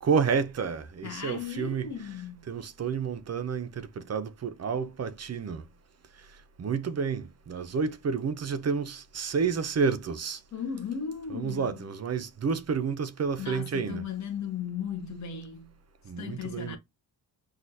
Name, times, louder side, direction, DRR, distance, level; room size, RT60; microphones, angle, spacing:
voice 1, 0.0-1.9 2.5-5.6 6.6-10.4 11.3-14.1 16.1-16.8, right 5 dB, 40° right, 0.6 m, -30 dB
voice 2, 1.0-2.5 10.5-11.8 13.4-15.8 16.2-16.8, left 7 dB, 40° left, 1.0 m, -36 dB
6.3 x 2.4 x 2.6 m
wide cardioid pair, 145°, 41 cm